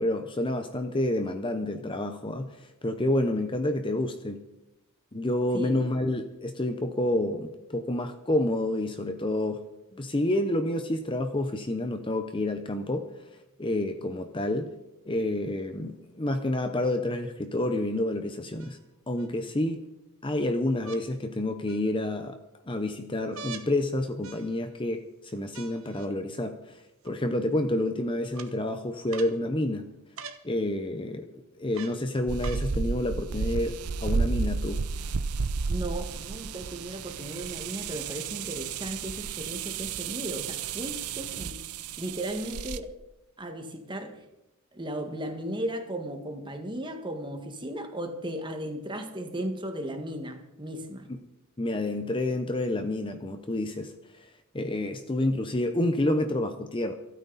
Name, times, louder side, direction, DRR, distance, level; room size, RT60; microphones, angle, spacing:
voice 1, 0.0-4.4 5.1-9.6 10.0-13.1 13.6-14.7 15.1-18.8 19.1-19.9 20.2-22.4 22.7-25.0 25.3-26.8 27.0-29.8 30.4-31.3 31.6-34.8 51.1-51.2 51.6-53.9 54.5-56.9, left 1 dB, 20° left, 8 dB, 0.8 m, -29 dB
sound 1, 16.9-17.0 18.6-19.3 20.8-21.0 21.7-22.2 23.3-23.7 24.2-24.8 25.5-26.1 27.0-27.1 28.3-28.5 29.1-29.4 30.2-30.4 31.7-32.0 32.4-32.7 33.5-33.6, right 5 dB, 65° right, 1.3 m, -44 dB
sound 2, 32.3-42.8, right 4 dB, 85° right, 0.7 m, -32 dB
voice 2, 35.7-41.6 42.0-42.9 43.4-44.2 44.7-51.1, right 1 dB, 20° right, 5 dB, 1.7 m, -36 dB
28.0 x 9.3 x 4.1 m, 0.92 s
head